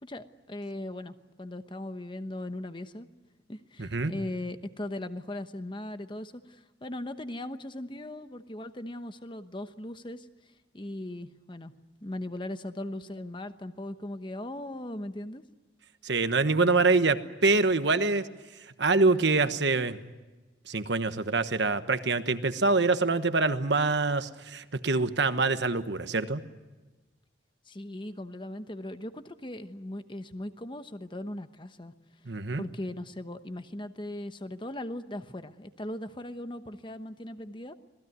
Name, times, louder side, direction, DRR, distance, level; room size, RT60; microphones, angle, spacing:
voice 1, 0.0-3.1 3.5-10.3 10.7-11.7 12.0-15.4 27.7-31.9 32.6-37.7, left 1 dB, 25° left, 10 dB, 1.0 m, -38 dB
voice 2, 3.8-4.1 16.0-18.3 18.8-20.0 20.7-26.4 32.2-32.6, right 3 dB, 65° right, 10 dB, 1.2 m, -25 dB
26.5 x 19.0 x 9.5 m, 1.2 s
head